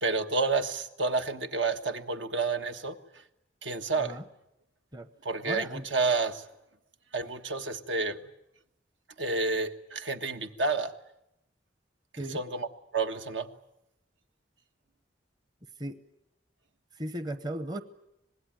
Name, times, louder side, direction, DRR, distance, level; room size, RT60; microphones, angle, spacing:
voice 1, 0.0-3.0 3.6-4.2 5.2-6.4 7.1-8.2 9.2-10.9 12.3-12.7 12.9-13.5, right 3 dB, 75° right, 7 dB, 1.5 m, -29 dB
voice 2, 5.4-5.8 12.2-12.4 15.8-16.0 17.0-17.8, right 1 dB, 20° right, 11 dB, 0.9 m, -36 dB
25.5 x 20.0 x 9.2 m, 0.85 s
head